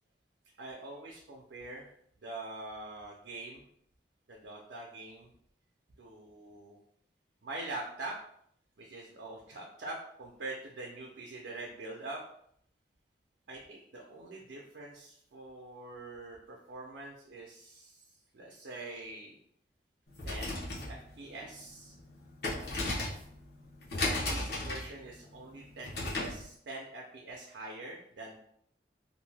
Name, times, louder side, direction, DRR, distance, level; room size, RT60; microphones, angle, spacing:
voice 1, 0.5-1.9 2.2-3.7 4.3-5.3 6.0-6.8 7.4-8.2 8.8-12.2 13.5-19.4 20.2-20.6 20.9-22.0 23.9-28.4, right 2 dB, 75° right, -2 dB, 0.5 m, -44 dB
sound 1, 20.1-26.4, left 2 dB, 60° left, 0.8 m, -36 dB
2.6 x 2.1 x 3.2 m, 0.67 s
head